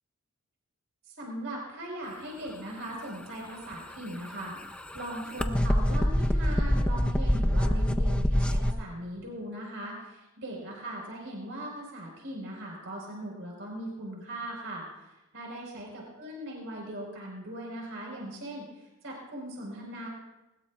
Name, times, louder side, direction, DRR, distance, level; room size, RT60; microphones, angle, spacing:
voice 1, 1.1-18.7 19.0-20.1, right 1 dB, 60° right, -1 dB, 4.7 m, -39 dB
sound 1, 3.6-8.7, equal, 5° left, 0.4 m, -26 dB
20.5 x 20.0 x 2.4 m, 1.0 s
head